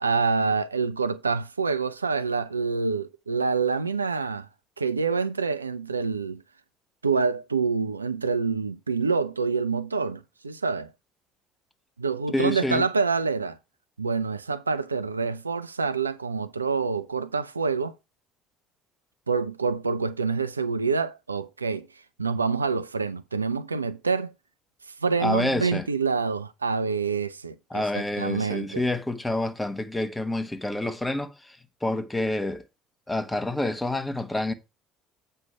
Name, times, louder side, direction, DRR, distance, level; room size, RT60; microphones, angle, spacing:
voice 1, 0.0-4.5 4.8-6.4 7.0-10.9 12.0-13.6 14.0-17.9 19.3-21.9 22.2-24.3 25.0-28.8, right 4 dB, 85° right, 0.4 m, -26 dB
voice 2, 12.3-12.8 25.2-25.8 27.7-32.6 33.1-34.5, left 1 dB, 10° left, 1.2 m, -28 dB
8.1 x 5.4 x 4.7 m
figure-of-eight pair, 55°, 0 cm